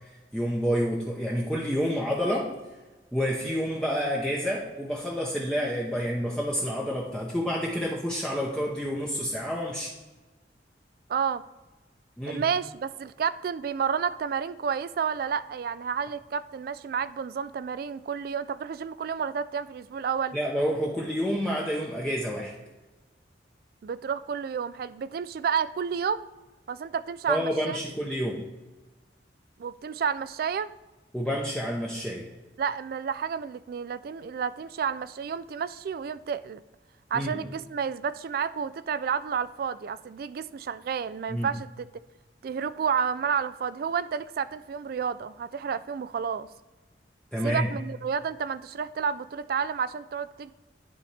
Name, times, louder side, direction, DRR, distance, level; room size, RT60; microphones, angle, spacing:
voice 1, 0.3-2.5 3.1-9.9 12.2-12.4 20.3-22.5 27.3-28.5 31.1-32.2 37.1-37.3 41.3-41.5 47.3-47.7, equal, 5° left, -4 dB, 0.7 m, -28 dB
voice 2, 11.1-11.4 12.3-20.4 23.8-26.3 26.7-27.8 29.6-30.7 32.6-36.6 37.1-41.9 42.4-46.5 47.4-50.5, right 7 dB, 55° right, 16 dB, 0.3 m, -30 dB
11.0 x 4.2 x 3.3 m, 1.2 s
head